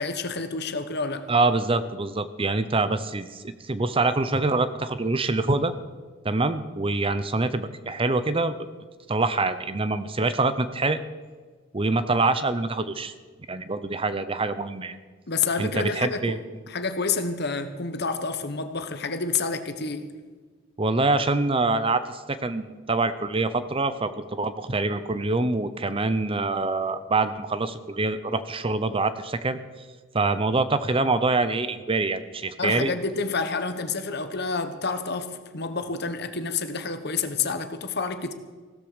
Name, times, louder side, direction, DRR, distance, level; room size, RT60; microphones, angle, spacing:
voice 1, 0.0-1.3 15.3-16.4 16.7-20.1 32.6-38.3, left 4 dB, 55° left, 9 dB, 1.2 m, -29 dB
voice 2, 1.3-5.7 6.2-8.6 9.1-11.0 11.7-13.1 13.5-15.0 15.6-16.4 20.8-29.6 30.1-32.9, right 3 dB, 25° right, 12 dB, 0.7 m, -25 dB
16.0 x 13.5 x 5.1 m, 1.4 s
head